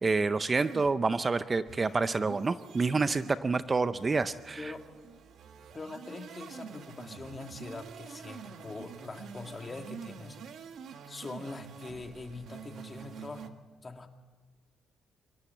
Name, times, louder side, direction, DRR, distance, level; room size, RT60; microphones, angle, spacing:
voice 1, 0.0-4.7, right 4 dB, 30° right, 13 dB, 0.6 m, -28 dB
sound 1, 0.6-13.5, right 6 dB, 70° right, 1.4 m, -47 dB
voice 2, 4.5-4.9 5.7-10.4 11.1-13.6 13.8-14.1, left 3 dB, 30° left, 5 dB, 2.1 m, -43 dB
25.0 x 13.0 x 8.6 m, 1.4 s
cardioid pair, 90°, 0 cm